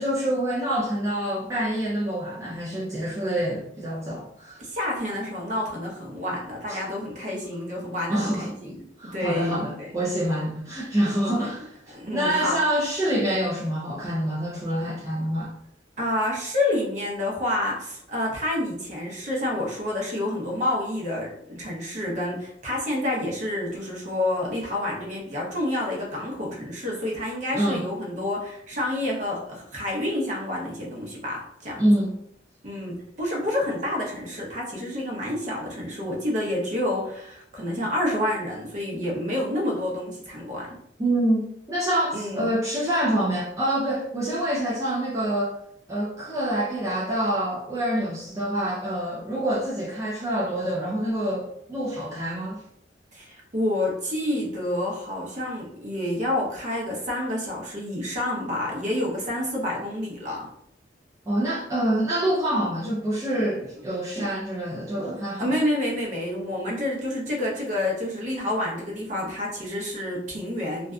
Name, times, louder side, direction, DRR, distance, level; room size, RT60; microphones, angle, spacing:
voice 1, 0.0-4.6 6.7-6.8 8.1-8.5 9.0-11.7 12.1-15.5 27.5-27.9 31.8-32.2 41.0-45.6 45.9-52.6 61.3-65.5, right 1 dB, 15° right, -6 dB, 0.4 m, -26 dB
voice 2, 4.6-9.9 11.0-11.3 11.9-12.6 16.0-31.9 32.6-40.7 42.1-42.5 53.1-60.5 65.4-70.9, left 1 dB, 40° right, -2 dB, 0.7 m, -29 dB
2.6 x 2.3 x 2.2 m, 0.71 s
head